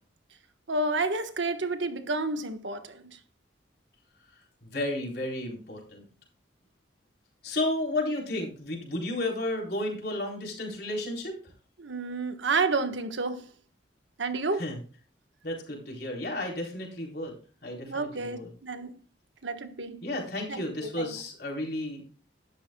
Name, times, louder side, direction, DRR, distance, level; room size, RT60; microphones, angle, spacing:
voice 1, 0.7-3.0 11.8-13.5 14.2-14.6 17.9-18.9 19.4-20.0 20.5-21.1, right 3 dB, 80° right, 1.4 m, -30 dB
voice 2, 4.6-6.0 7.4-11.3 14.5-14.8 15.4-17.3 17.6-18.5 20.0-22.0, left 1 dB, 55° left, 4.0 m, -32 dB
12.5 x 11.5 x 2.3 m
head